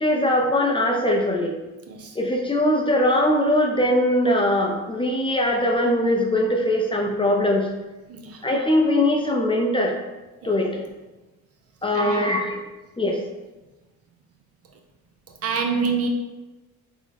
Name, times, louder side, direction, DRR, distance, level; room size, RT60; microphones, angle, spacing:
voice 1, 0.0-1.5 2.2-7.7 8.4-9.9 10.4-10.8 11.8-12.6 13.0-13.2, left 1 dB, 15° left, 0 dB, 0.5 m, -21 dB
voice 2, 1.9-2.2 8.1-8.4 10.4-10.6 11.9-12.3 15.4-16.1, right 5 dB, 55° right, 4 dB, 0.5 m, -26 dB
3.5 x 2.0 x 3.3 m, 1.1 s
cardioid pair, 90°, 30 cm